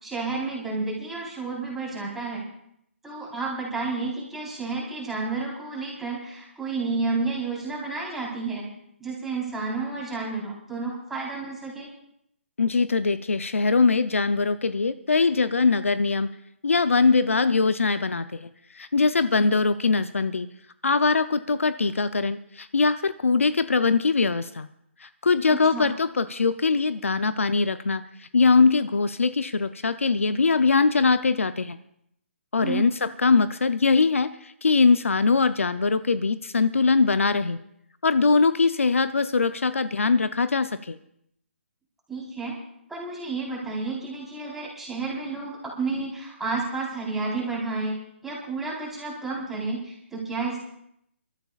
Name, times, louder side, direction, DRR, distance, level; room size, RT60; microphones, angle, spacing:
voice 1, 0.0-2.4 3.0-8.7 9.0-11.9 25.5-25.9 32.6-32.8 42.1-42.5 42.9-47.9 48.2-50.6, right 3 dB, 5° right, -5 dB, 4.1 m, -31 dB
voice 2, 12.6-16.3 16.6-18.5 18.7-20.5 20.8-24.7 25.0-31.8 32.5-37.6 38.0-41.0, left 4 dB, 85° left, 12 dB, 0.6 m, -22 dB
28.5 x 13.5 x 2.5 m, 0.73 s
hypercardioid pair, 150°, 7 cm